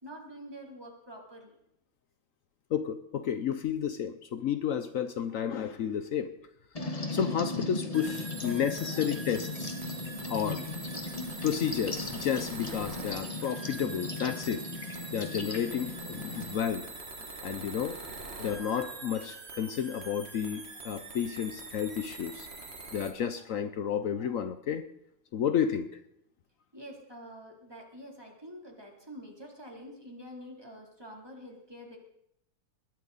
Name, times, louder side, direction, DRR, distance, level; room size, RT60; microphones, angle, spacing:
voice 1, 0.0-1.5 26.7-32.0, equal, 10° right, -1 dB, 3.2 m, -47 dB
voice 2, 2.7-6.3 6.8-9.7 10.3-10.6 11.4-16.8 17.4-18.0 18.4-22.5 22.9-24.9 25.3-25.9, left 8 dB, 90° left, 10 dB, 0.7 m, -31 dB
sound 1, 6.7-16.6, left 2 dB, 20° left, 1.0 m, -38 dB
sound 2, 7.9-23.1, right 3 dB, 30° right, 2.0 m, -43 dB
21.0 x 13.5 x 4.1 m, 0.75 s
omnidirectional pair, 2.4 m